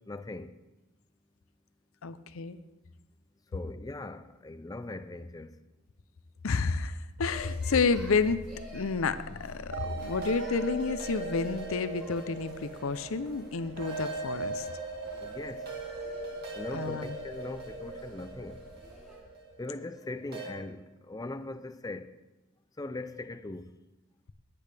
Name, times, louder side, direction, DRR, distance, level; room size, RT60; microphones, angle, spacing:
voice 1, 0.1-0.5 3.5-5.5 15.2-15.6 16.5-18.6 19.6-22.1 22.8-23.7, left 2 dB, 15° left, 0.4 m, -40 dB
voice 2, 2.0-2.6 6.4-8.4 8.7-14.7 16.7-17.2, left 4 dB, 70° left, 0.6 m, -30 dB
sound 1, 7.3-19.2, equal, 5° right, 4.8 m, -49 dB
sound 2, 9.7-20.5, right 3 dB, 45° right, 2.3 m, -39 dB
16.5 x 10.0 x 3.4 m
head